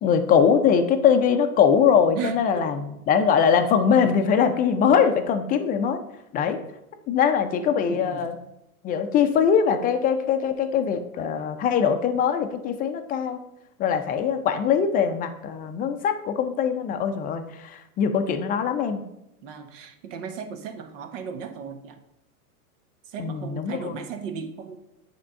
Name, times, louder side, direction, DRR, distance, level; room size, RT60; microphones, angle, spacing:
voice 1, 0.0-6.0 6.3-6.6 7.1-8.4 8.8-13.4 13.8-19.0 23.2-24.0, left 7 dB, 20° left, 7 dB, 0.5 m, -22 dB
voice 2, 2.1-2.7 7.9-8.3 19.4-22.0 23.1-24.8, right 7 dB, 55° right, 7 dB, 1.3 m, -36 dB
8.5 x 3.6 x 5.3 m, 0.85 s
hypercardioid pair, 115°, 46 cm